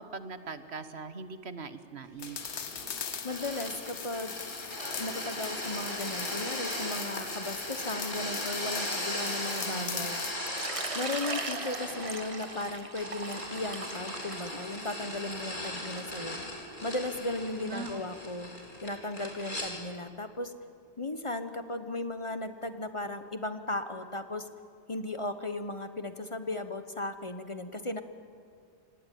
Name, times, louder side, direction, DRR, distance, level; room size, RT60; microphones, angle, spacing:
voice 1, 0.0-2.4 9.6-10.1 17.7-18.0, right 4 dB, 70° right, 11 dB, 1.4 m, -40 dB
sound 1, 2.2-10.4, left 7 dB, 80° left, 1.3 m, -41 dB
sound 2, 2.2-19.7, left 1 dB, 45° left, 4.4 m, -38 dB
voice 2, 3.2-4.4 4.8-10.2 10.9-16.4 16.8-18.5 18.8-20.5 21.0-24.5 24.9-28.0, left 2 dB, 30° left, 9 dB, 1.1 m, -36 dB
Water / Liquid, 10.5-16.0, right 3 dB, 30° right, 1.2 m, -39 dB
27.0 x 19.0 x 9.3 m, 2.3 s
omnidirectional pair, 1.1 m